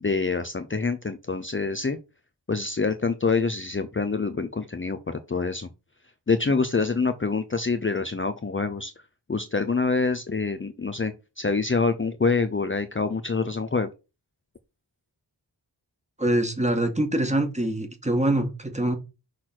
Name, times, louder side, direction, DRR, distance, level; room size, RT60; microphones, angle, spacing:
voice 1, 0.0-2.0 2.5-5.7 6.3-8.9 9.3-13.9, left 4 dB, 30° left, 0.7 m, -26 dB
voice 2, 16.2-19.0, right 1 dB, 15° right, 1.8 m, -24 dB
6.5 x 4.1 x 6.0 m
wide cardioid pair, 80°, 42 cm